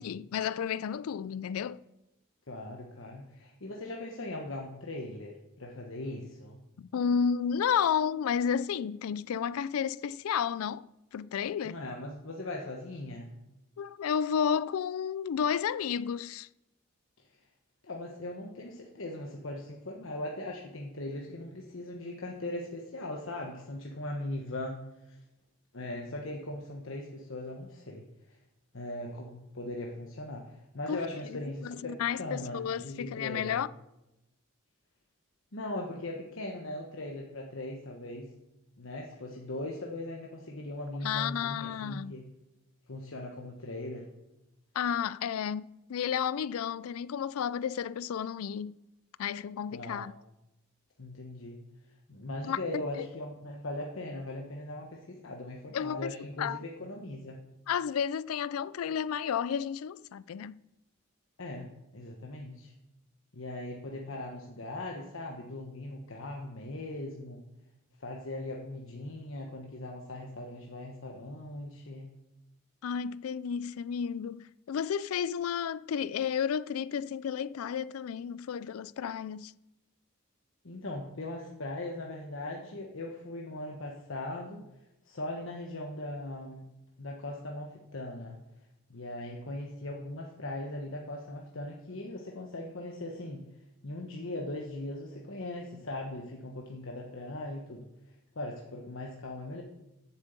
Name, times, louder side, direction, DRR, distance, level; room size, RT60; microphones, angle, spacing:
voice 1, 0.0-1.8 6.8-10.9 11.1-11.8 13.8-16.5 30.9-31.0 31.2-33.7 41.0-42.1 44.7-48.8 49.2-50.1 52.4-53.1 55.7-56.1 56.4-56.6 57.7-60.6 72.8-79.5, left 7 dB, 85° left, 0.4 m, -32 dB
voice 2, 2.5-6.6 11.6-13.3 17.8-25.2 25.7-28.4 28.7-33.6 35.5-38.3 38.8-42.2 42.9-44.1 49.7-50.1 51.0-51.6 52.1-57.4 61.4-62.7 63.3-67.4 68.0-72.1 80.6-84.7 85.0-86.6 87.0-88.4 88.9-93.4 93.8-97.8 98.3-99.6, left 1 dB, 65° left, 1.2 m, -39 dB
7.6 x 7.3 x 8.0 m
head